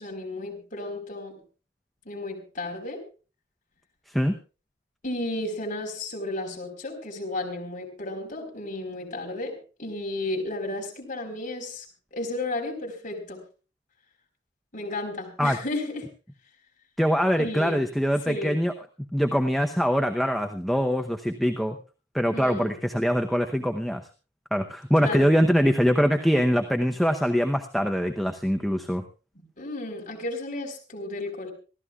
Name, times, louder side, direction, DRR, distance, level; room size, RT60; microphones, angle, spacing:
voice 1, 0.0-1.4 2.0-3.0 5.0-11.9 12.1-13.4 14.7-16.1 17.4-17.8 18.3-18.6 22.3-22.8 25.0-25.3 29.6-31.5, left 2 dB, 45° left, 1 dB, 4.3 m, -33 dB
voice 2, 17.0-18.7 19.1-21.8 22.1-24.0 24.5-29.0, equal, ahead, 4 dB, 0.8 m, -23 dB
26.5 x 14.0 x 2.4 m, 0.34 s
head